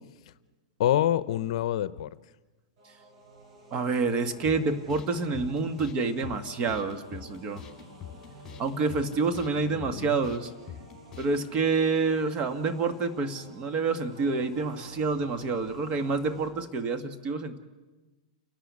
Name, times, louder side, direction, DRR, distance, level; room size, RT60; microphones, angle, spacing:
voice 1, 0.8-2.1 9.5-10.2, left 12 dB, 65° left, 16 dB, 0.7 m, -27 dB
sound 1, 2.8-16.5, right 1 dB, 65° right, 7.5 m, -50 dB
voice 2, 3.7-7.6 8.6-10.5 11.2-17.6, right 4 dB, 30° right, 8 dB, 1.7 m, -28 dB
sound 2, 4.5-11.5, left 8 dB, 15° left, 4.7 m, -45 dB
29.5 x 11.5 x 8.4 m, 1.2 s
hypercardioid pair, 130°, 4 cm